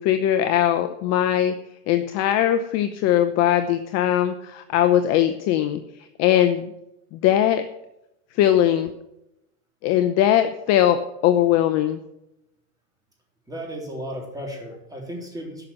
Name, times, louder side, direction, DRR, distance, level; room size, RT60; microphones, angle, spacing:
voice 1, 0.0-1.5 1.9-5.8 6.2-6.7 7.1-7.7 8.4-8.9 9.8-12.0, left 11 dB, 35° left, 9 dB, 0.7 m, -20 dB
voice 2, 13.5-15.6, equal, 5° right, 0 dB, 3.5 m, -34 dB
11.5 x 6.0 x 8.7 m, 0.90 s
hypercardioid pair, 130°, 48 cm